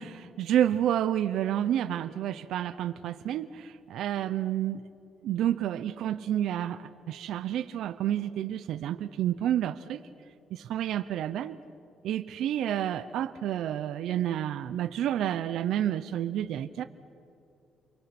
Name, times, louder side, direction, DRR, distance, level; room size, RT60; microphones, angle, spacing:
voice 1, 0.0-4.8 5.2-10.0 10.5-11.6 12.0-16.8, right 11 dB, 80° right, 11 dB, 0.7 m, -29 dB
29.0 x 24.0 x 6.1 m, 2.5 s
cardioid pair, 90°, 0 cm